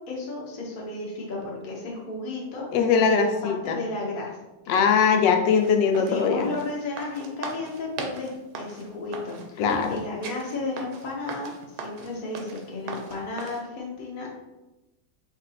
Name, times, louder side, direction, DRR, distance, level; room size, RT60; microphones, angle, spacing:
voice 1, 0.1-4.4 4.6-4.9 6.1-14.3, left 2 dB, 40° left, -3 dB, 0.8 m, -34 dB
voice 2, 2.7-3.8 4.7-6.5 9.6-10.0, left 6 dB, 85° left, 5 dB, 1.2 m, -21 dB
sound 1, 5.5-13.6, right 4 dB, 75° right, 1.2 m, -39 dB
3.9 x 2.6 x 4.1 m, 1.0 s
omnidirectional pair, 1.9 m